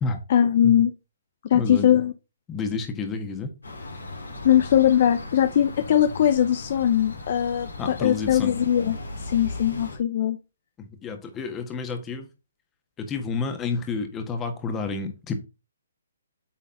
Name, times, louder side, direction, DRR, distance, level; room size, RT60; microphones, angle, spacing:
voice 1, 0.3-0.9 1.4-2.1 4.4-9.0 9.3-10.4, left 10 dB, 50° left, 0.6 m, -20 dB
voice 2, 1.5-2.0 2.5-3.5 7.8-8.5 10.8-12.3 13.0-15.3, left 4 dB, 15° left, 1.5 m, -30 dB
sound 1, 3.6-10.0, left 2 dB, 85° left, 3.4 m, -37 dB
8.6 x 4.0 x 3.8 m
hypercardioid pair, 140°, 0 cm